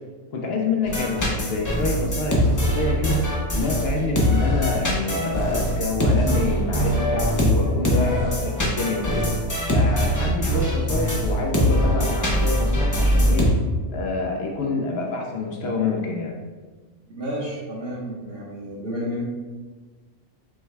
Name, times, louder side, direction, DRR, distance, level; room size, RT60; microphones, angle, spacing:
voice 1, 0.3-3.2 3.5-9.3 9.7-13.5 13.9-16.3, left 3 dB, 65° left, 0 dB, 0.8 m, -27 dB
sound 1, 0.8-13.5, equal, 25° left, 0.4 m, -22 dB
voice 2, 17.1-19.2, equal, 55° right, -5 dB, 1.2 m, -31 dB
5.4 x 2.2 x 3.2 m, 1.3 s
omnidirectional pair, 1.2 m